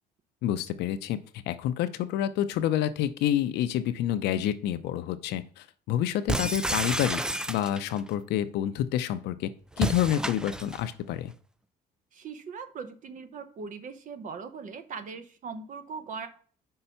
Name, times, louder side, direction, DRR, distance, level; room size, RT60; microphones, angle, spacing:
voice 1, 0.4-7.2 7.5-9.5 9.8-11.3, left 11 dB, 80° left, 11 dB, 0.7 m, -28 dB
sound 1, 6.3-8.0 9.7-10.9, right 1 dB, 5° right, 0.3 m, -30 dB
voice 2, 12.1-16.3, right 5 dB, 50° right, 10 dB, 0.9 m, -40 dB
5.6 x 3.9 x 5.7 m, 0.44 s
cardioid pair, 110°, 17 cm